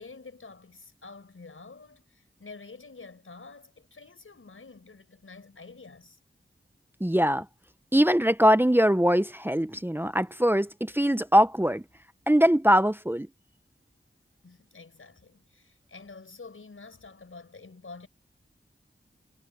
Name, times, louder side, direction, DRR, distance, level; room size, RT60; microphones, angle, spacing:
voice 1, 0.0-6.2 14.4-18.1, left 4 dB, 80° left, 5.1 m, -48 dB
voice 2, 7.0-7.5 7.9-11.8 12.3-13.3, equal, 10° right, 0.8 m, -22 dB
wide cardioid pair, 50°, 21 cm